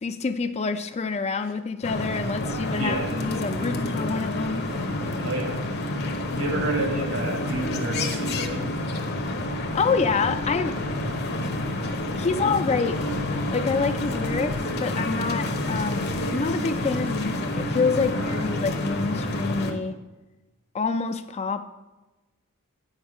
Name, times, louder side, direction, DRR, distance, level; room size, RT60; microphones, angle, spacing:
voice 1, 0.0-4.7 9.7-10.8 12.2-13.0 13.5-14.5 14.8-20.0 20.7-21.7, left 4 dB, 30° left, 9 dB, 0.4 m, -27 dB
sound 1, 1.8-19.7, left 1 dB, 50° left, 0.9 m, -28 dB
voice 2, 2.8-3.1 5.2-5.6 6.3-8.7 18.1-18.6, right 1 dB, 65° right, 2 dB, 1.7 m, -30 dB
8.9 x 5.4 x 4.9 m, 1.1 s
head